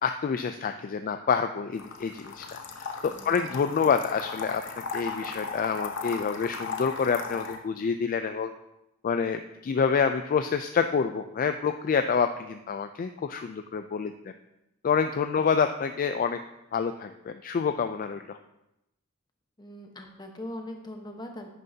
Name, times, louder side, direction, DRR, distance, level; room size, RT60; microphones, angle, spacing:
voice 1, 0.0-4.6 4.9-8.5 9.0-14.3 14.8-16.4 16.7-18.4, left 6 dB, 40° left, 8 dB, 0.3 m, -27 dB
sound 1, 1.8-7.6, left 5 dB, 60° left, 0.9 m, -37 dB
voice 2, 3.1-3.6 15.5-15.7 19.6-21.5, left 1 dB, 20° left, 3 dB, 1.0 m, -41 dB
10.5 x 9.3 x 2.8 m, 0.90 s
head